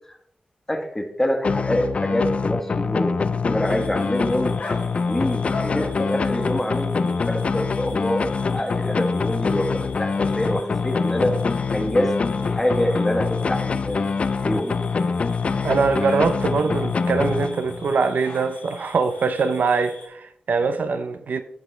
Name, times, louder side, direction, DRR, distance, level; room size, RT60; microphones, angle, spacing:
voice 1, 0.7-3.2 3.4-4.5 5.1-11.3 11.7-14.0 14.4-14.8, left 1 dB, 10° left, 1.2 m, -26 dB
sound 1, 1.4-18.0, left 4 dB, 45° left, 0.4 m, -24 dB
sound 2, 3.6-20.1, left 3 dB, 65° left, 2.5 m, -41 dB
voice 2, 15.6-21.4, right 4 dB, 75° right, 0.6 m, -22 dB
15.0 x 5.1 x 3.3 m
wide cardioid pair, 165°, 3 cm